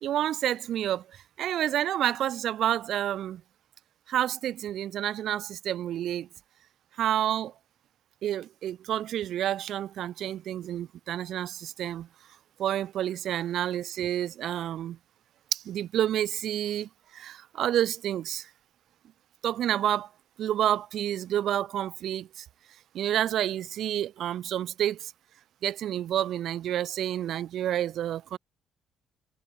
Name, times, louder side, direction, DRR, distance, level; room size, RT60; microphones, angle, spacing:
voice 1, 0.0-1.0 1.4-3.4 4.1-6.3 7.0-7.5 8.2-12.1 12.6-15.0 15.5-18.5 19.4-20.1 20.4-22.4 22.9-25.1 25.6-28.4, right 11 dB, 65° right, 2.6 m, -29 dB
hypercardioid pair, 45°, 0 cm